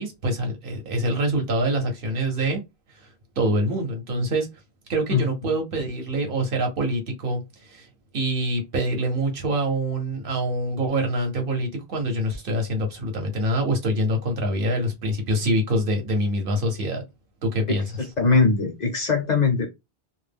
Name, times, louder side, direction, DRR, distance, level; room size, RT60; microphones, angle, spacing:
voice 1, 0.0-2.6 3.4-4.5 4.9-7.9 8.1-17.0 17.4-17.8, right 1 dB, 60° right, 0.9 m, -25 dB
voice 2, 18.2-19.7, left 4 dB, 55° left, 0.6 m, -20 dB
2.2 x 2.0 x 3.3 m
omnidirectional pair, 1.0 m